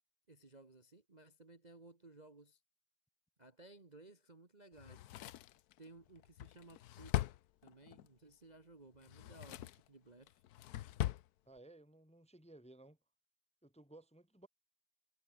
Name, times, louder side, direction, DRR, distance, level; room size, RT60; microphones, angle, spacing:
voice 1, 0.3-2.6 3.4-5.1 5.8-7.3 7.6-10.4, right 2 dB, 20° right, 1.5 m, -59 dB
Drawer open or close, 4.8-8.1 8.9-9.9 10.3-11.3 11.6-11.7, left 14 dB, 75° left, 0.8 m, -41 dB
voice 2, 11.4-13.0 13.6-14.5, right 2 dB, 5° left, 1.6 m, -58 dB
omnidirectional pair, 2.3 m